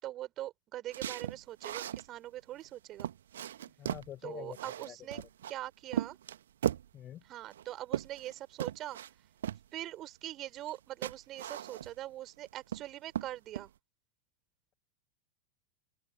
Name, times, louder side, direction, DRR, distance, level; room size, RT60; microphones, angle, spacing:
voice 1, 0.0-3.1 4.2-5.2 5.5-6.2 7.3-9.0 9.7-13.7, right 14 dB, 35° right, 3.8 m, -42 dB
sound 1, 0.9-2.1 2.6-2.7 3.0-4.1 4.5-5.5 5.9-6.9 7.5-8.3 8.6-9.1 9.4-9.6 10.6-10.8 11.0-12.1 12.5-12.9 13.1-13.7, right 10 dB, 60° right, 1.7 m, -37 dB
voice 2, 3.8-4.6 4.9-5.3 6.9-7.2, left 11 dB, 30° left, 6.4 m, -46 dB
open air
figure-of-eight pair, 90°, 0 cm